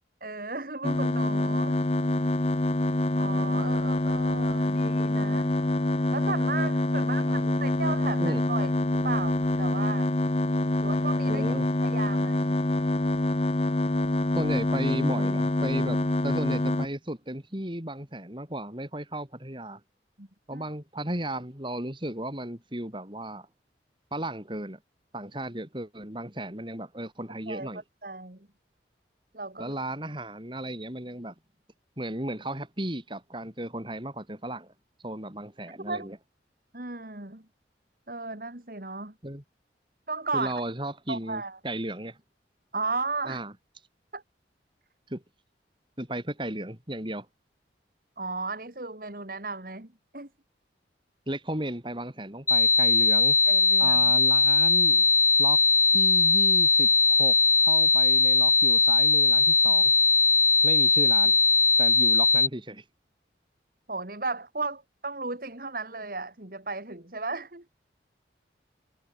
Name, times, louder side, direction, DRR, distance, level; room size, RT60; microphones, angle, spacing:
voice 1, 0.2-1.8 3.2-5.5 6.1-10.1 10.8-12.6 20.2-20.6 27.5-27.7 28.0-28.5 29.3-29.7 35.9-36.1 36.7-37.4 38.1-39.1 40.1-40.5 41.1-41.6 42.7-43.4 44.1-44.2 48.2-50.3 53.5-54.1 63.9-67.6, right 3 dB, 50° right, 2.5 m, -35 dB
sound 1, 0.8-16.9, left 1 dB, 35° left, 0.8 m, -26 dB
voice 2, 7.1-7.6 8.2-8.4 11.3-11.7 14.3-19.8 20.5-23.5 24.1-24.8 25.1-27.8 29.6-31.3 32.0-34.7 35.0-36.2 39.2-39.4 40.3-42.2 43.2-43.5 45.1-45.2 46.0-47.3 51.3-53.4 53.8-55.1 55.4-59.9 60.6-61.4 61.8-62.8, right 1 dB, 25° right, 4.0 m, -35 dB
sound 2, 52.5-62.5, left 4 dB, 15° left, 1.5 m, -20 dB
head